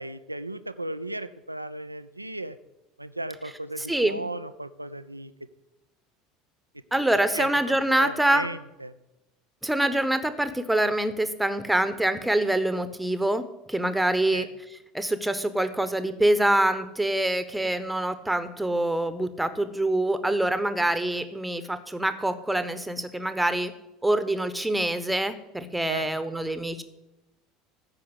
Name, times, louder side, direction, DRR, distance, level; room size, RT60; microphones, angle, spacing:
voice 1, 0.0-2.6 3.0-5.3 7.3-8.9 14.3-14.5 25.9-26.1, right 1 dB, 85° right, 13 dB, 0.4 m, -36 dB
voice 2, 3.8-4.2 6.9-8.5 9.6-14.5 14.9-23.7 24.0-26.8, right 1 dB, 5° right, 11 dB, 1.2 m, -25 dB
14.5 x 5.7 x 8.1 m, 0.95 s
figure-of-eight pair, 70°, 0 cm